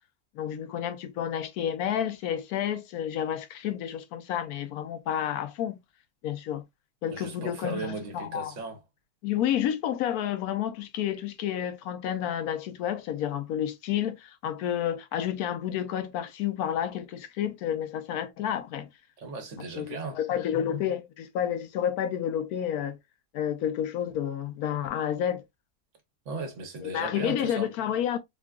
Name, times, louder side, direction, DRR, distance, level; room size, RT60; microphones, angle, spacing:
voice 1, 0.3-5.8 6.2-6.6 7.0-8.5 9.2-18.9 19.8-23.0 23.3-25.4 26.8-28.2, left 10 dB, 75° left, 1.1 m, -30 dB
voice 2, 7.1-8.8 19.2-20.2 26.2-27.7, right 3 dB, 55° right, 1.1 m, -37 dB
3.7 x 2.3 x 2.2 m
omnidirectional pair, 1.6 m